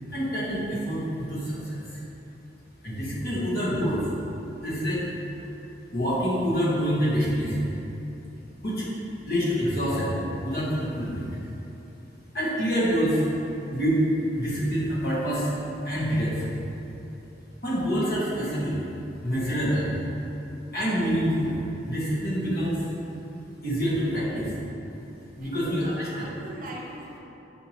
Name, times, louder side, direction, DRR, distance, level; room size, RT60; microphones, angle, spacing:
voice 1, 0.1-1.8 2.8-4.0 4.6-5.1 5.9-7.6 8.6-8.9 9.3-10.1 10.4-11.3 12.3-13.2 13.7-15.5 15.8-16.5 17.6-18.7 19.2-19.9 20.7-21.5 21.9-22.8 23.6-24.4 25.4-26.2, equal, 55° left, -9 dB, 1.2 m, -26 dB
voice 2, 25.4-27.2, right 1 dB, 45° right, -3 dB, 0.5 m, -41 dB
6.4 x 2.8 x 2.9 m, 3.0 s
head